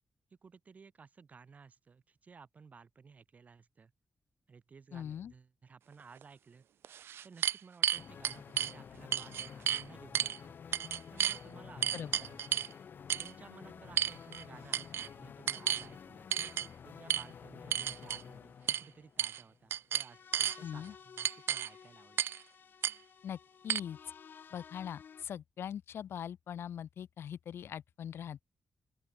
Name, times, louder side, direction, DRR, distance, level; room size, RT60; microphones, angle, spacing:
voice 1, 0.4-3.9 4.5-6.6 7.2-10.6 11.1-12.6 13.2-16.3 16.8-22.2, right 5 dB, 40° right, 2.6 m, -56 dB
voice 2, 4.9-5.3 11.9-12.1 20.6-20.9 23.2-23.4 23.6-24.0 24.5-28.4, left 9 dB, 90° left, 1.2 m, -41 dB
sound 1, 6.2-6.3 6.8-8.7 9.1-9.8 10.1-10.4 10.7-11.4 11.8-12.7 13.1-13.3 14.0-14.4 14.7-15.1 15.5-15.9 16.3-16.7 17.1-17.2 17.7-18.2 18.7-18.8 19.2-19.4 19.7-20.6 21.2-21.7 22.2-22.4 22.8-22.9 23.7-23.8, right 10 dB, 90° right, 0.3 m, -32 dB
sound 2, 7.9-25.2, left 7 dB, 60° left, 2.1 m, -52 dB
open air
wide cardioid pair, 155°, 4 cm